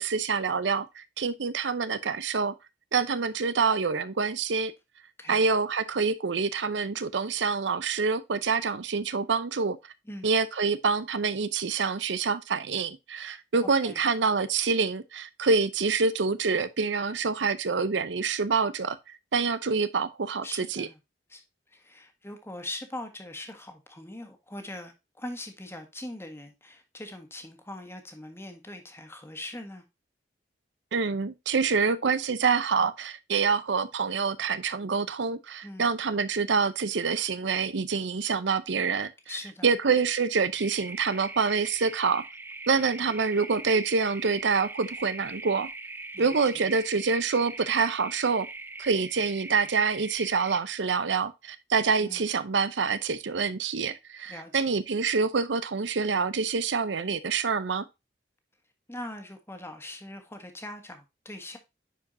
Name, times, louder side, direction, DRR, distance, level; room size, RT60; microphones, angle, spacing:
voice 1, 0.0-2.5 2.9-4.7 5.3-9.8 10.2-20.9 30.9-39.1 39.6-42.2 42.7-45.7 46.2-48.5 48.8-57.8, right 5 dB, 80° right, 0.6 m, -26 dB
voice 2, 13.6-14.0 20.4-21.0 21.3-21.4 21.7-29.8 35.6-35.9 39.3-39.7 46.1-46.6 52.0-52.3 54.3-54.7 58.9-61.6, left 1 dB, 15° left, 1.5 m, -41 dB
sound 1, 40.5-50.6, right 3 dB, 10° right, 0.5 m, -41 dB
10.0 x 4.9 x 2.7 m
head